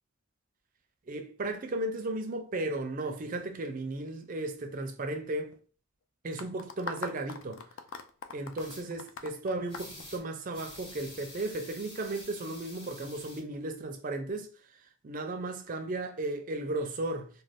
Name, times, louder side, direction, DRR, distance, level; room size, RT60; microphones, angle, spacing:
voice 1, 1.1-5.5 6.2-7.6 8.3-17.3, right 2 dB, 35° right, 0.4 m, -35 dB
sound 1, 6.4-10.8, left 5 dB, 55° left, 0.3 m, -42 dB
sound 2, 8.6-8.8 9.7-10.2 10.5-13.4, left 1 dB, 20° left, 0.8 m, -48 dB
2.5 x 2.3 x 3.3 m
head